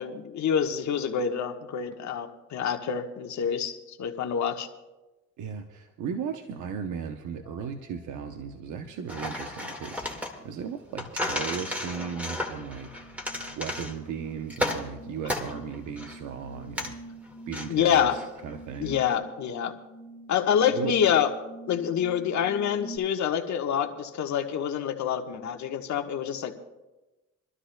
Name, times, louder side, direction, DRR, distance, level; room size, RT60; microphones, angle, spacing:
voice 1, 0.0-4.7 17.7-18.2 18.8-19.7 20.3-21.3 21.7-26.5, left 8 dB, 70° left, 4 dB, 1.3 m, -27 dB
voice 2, 5.4-13.2 13.6-17.0 17.5-19.0 20.7-20.9, right 7 dB, 80° right, 6 dB, 0.8 m, -36 dB
sound 1, 7.4-7.7 8.2-23.0, right 1 dB, 40° right, 2.8 m, -47 dB
sound 2, 9.1-19.1, left 1 dB, 5° right, 1.8 m, -35 dB
27.5 x 12.5 x 2.2 m, 1.1 s
cardioid pair, 90°, 30 cm